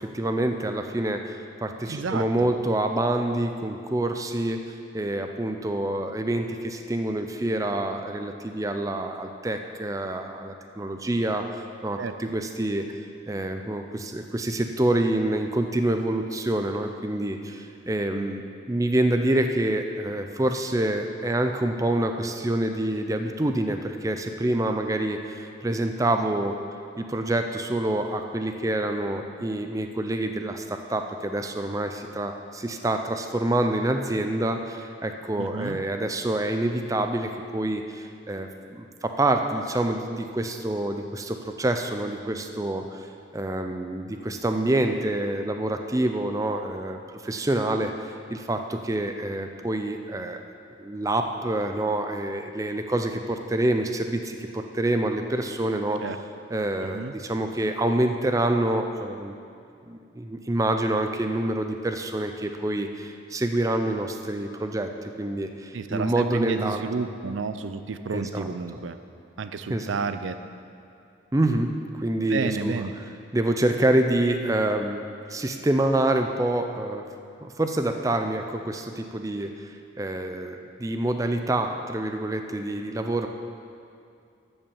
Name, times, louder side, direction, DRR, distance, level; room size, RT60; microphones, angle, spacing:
voice 1, 0.2-1.2 1.6-1.7 2.1-4.6 4.9-6.4 6.9-11.4 11.8-12.8 13.3-13.8 14.1-17.4 17.9-18.4 18.7-23.8 24.0-25.2 25.6-26.5 27.0-30.6 30.9-32.3 32.6-34.6 35.0-37.3 37.5-37.8 38.3-38.5 39.2-42.8 43.3-47.0 47.3-47.9 48.5-48.6 48.9-50.4 50.9-53.1 53.5-54.2 54.8-56.0 56.5-57.0 57.3-59.3 60.5-62.9 63.3-64.9 65.2-65.5 65.9-66.8 68.1-68.5 69.7-69.9 71.3-71.7 72.0-72.9 73.3-75.0 75.3-77.0 77.6-78.8 79.1-79.5 80.0-80.5 80.8-81.7 81.9-83.3, right 1 dB, 15° right, 5 dB, 0.4 m, -26 dB
voice 2, 1.9-2.5 12.0-12.1 35.4-35.8 56.0-56.2 56.8-57.1 65.7-69.0 69.4-70.4 72.3-72.9, right 4 dB, 75° right, 10 dB, 0.5 m, -31 dB
12.5 x 5.5 x 7.1 m, 2.5 s
head